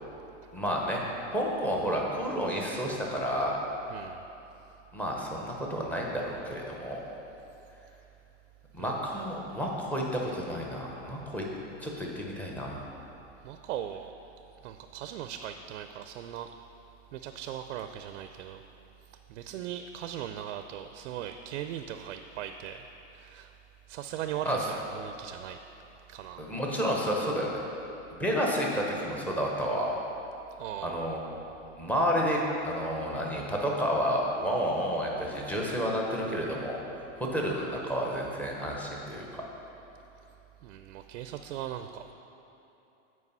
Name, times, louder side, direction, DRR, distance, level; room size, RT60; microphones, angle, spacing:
voice 1, 0.5-1.0 1.3-3.5 4.9-7.0 8.7-11.4 11.8-12.9 24.4-24.6 26.4-27.6 28.1-29.9 30.8-31.2 31.8-36.8 37.2-39.4, equal, 5° left, -2 dB, 0.7 m, -30 dB
voice 2, 3.9-4.3 8.8-9.1 13.4-14.1 14.6-16.5 17.1-18.6 19.3-23.6 23.9-25.6 26.1-26.5 30.6-31.2 40.6-42.1, right 10 dB, 75° right, 8 dB, 0.5 m, -39 dB
8.4 x 4.7 x 5.4 m, 2.9 s
supercardioid pair, 150°, 38 cm